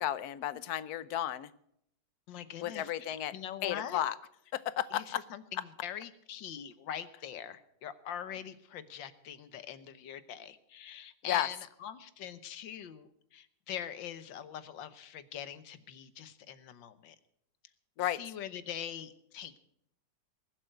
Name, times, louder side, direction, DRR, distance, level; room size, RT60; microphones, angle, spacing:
voice 1, 0.0-1.5 2.6-3.3 3.6-4.1 4.5-5.2 11.3-11.5 18.0-18.2, left 12 dB, 65° left, 16 dB, 1.2 m, -33 dB
voice 2, 2.3-4.0 4.9-17.2 18.0-19.6, left 9 dB, 90° left, 13 dB, 1.7 m, -43 dB
20.5 x 7.8 x 7.9 m, 0.73 s
omnidirectional pair, 2.0 m